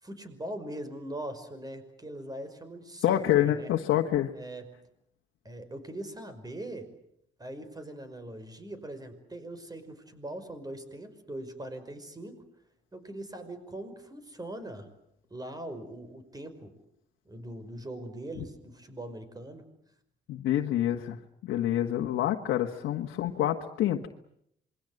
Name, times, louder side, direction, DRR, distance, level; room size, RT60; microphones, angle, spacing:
voice 1, 0.0-3.7 4.3-4.7 5.4-6.9 7.4-12.4 12.9-14.9 15.3-16.7 17.3-19.6, right 1 dB, 20° right, 10 dB, 5.5 m, -41 dB
voice 2, 3.0-4.3 20.3-24.1, left 12 dB, 85° left, 2 dB, 1.6 m, -27 dB
27.5 x 23.0 x 7.9 m, 0.74 s
cardioid pair, 90°, 20 cm